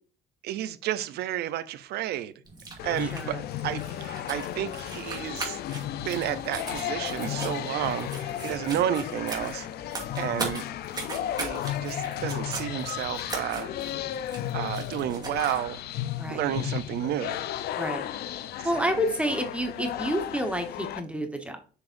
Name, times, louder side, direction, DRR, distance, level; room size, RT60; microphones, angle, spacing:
voice 1, 0.4-2.3 2.8-3.4 3.6-5.6 6.0-9.7 10.2-10.6 11.4-13.7 14.5-15.8 16.3-17.4 18.7-18.9, right 12 dB, 75° right, 0.7 m, -31 dB
sound 1, 2.4-15.6, right 3 dB, 25° right, 2.4 m, -40 dB
sound 2, 2.8-21.0, left 11 dB, 70° left, 0.6 m, -34 dB
voice 2, 3.0-3.4 16.2-16.5 17.7-18.0 18.6-21.6, equal, 5° right, 1.2 m, -29 dB
6.9 x 6.7 x 2.6 m
cardioid pair, 110°, 17 cm